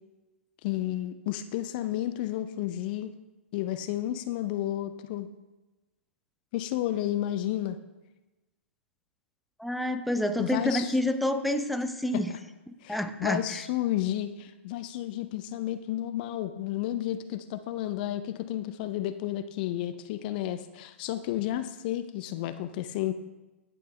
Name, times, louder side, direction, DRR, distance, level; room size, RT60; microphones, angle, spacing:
voice 1, 0.6-3.1 3.5-5.3 6.5-7.8 10.4-10.9 12.8-23.1, left 13 dB, 45° left, 11 dB, 0.5 m, -32 dB
voice 2, 9.6-12.3 12.9-13.6, left 1 dB, ahead, 7 dB, 0.6 m, -28 dB
11.5 x 8.7 x 3.2 m, 1.1 s
figure-of-eight pair, 110°, 7 cm